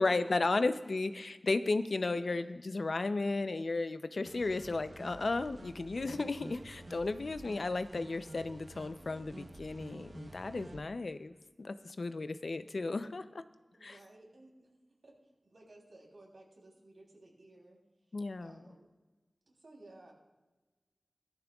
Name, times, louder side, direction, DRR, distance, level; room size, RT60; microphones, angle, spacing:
voice 1, 0.0-11.3 11.6-13.4 13.8-14.0 18.1-18.6, left 3 dB, 75° left, 11 dB, 0.5 m, -34 dB
voice 2, 2.1-2.4 13.7-14.7 15.0-15.1 15.4-17.8 18.4-18.9 19.5-20.1, right 2 dB, 85° right, -2 dB, 3.2 m, -57 dB
sound 1, 4.2-10.8, right 2 dB, 65° right, 0.9 m, -50 dB
16.0 x 13.5 x 2.4 m, 1.2 s
wide cardioid pair, 55°, 0 cm